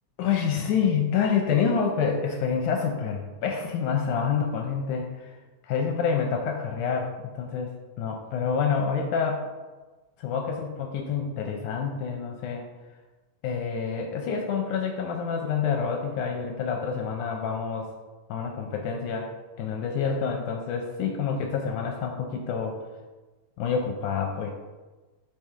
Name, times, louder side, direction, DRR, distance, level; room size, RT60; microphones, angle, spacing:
voice 1, 0.2-5.3 5.6-7.7 8.0-9.5 10.2-12.6 13.4-17.9 18.3-19.3 19.6-22.8 23.6-24.5, left 6 dB, 80° left, 2 dB, 1.9 m, -27 dB
5.6 x 5.1 x 4.5 m, 1.2 s
omnidirectional pair, 4.0 m